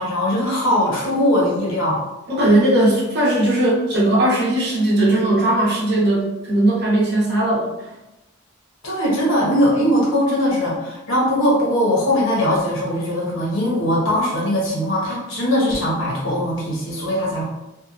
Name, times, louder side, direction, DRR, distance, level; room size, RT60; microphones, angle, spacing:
voice 1, 0.0-2.0 8.8-17.5, equal, 70° left, -4 dB, 0.9 m, -20 dB
voice 2, 2.3-7.7, right 1 dB, 55° right, -5 dB, 0.8 m, -18 dB
2.7 x 2.2 x 2.4 m, 0.98 s
head